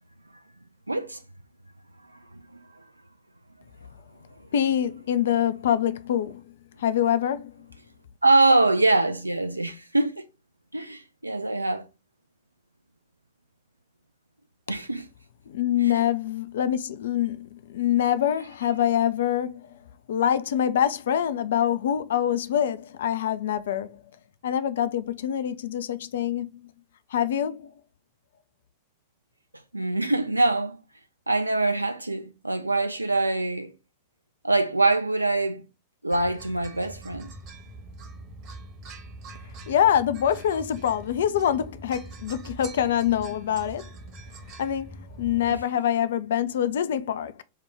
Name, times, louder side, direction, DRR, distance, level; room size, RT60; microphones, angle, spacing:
voice 1, 0.9-1.2 2.1-2.6 8.2-10.3 10.7-11.8 14.7-15.0 15.9-16.1 29.7-30.8 31.3-33.7 34.4-35.6 36.0-37.3, right 2 dB, 85° right, 0.4 m, -24 dB
voice 2, 4.5-6.4 6.8-7.5 15.5-19.8 20.1-24.0 24.4-26.7 27.1-27.7 39.7-43.9 44.6-47.4, left 10 dB, 60° left, 0.3 m, -25 dB
sound 1, 36.1-45.6, right 2 dB, 40° right, 1.0 m, -43 dB
4.6 x 2.2 x 3.3 m
figure-of-eight pair, 90°, 0 cm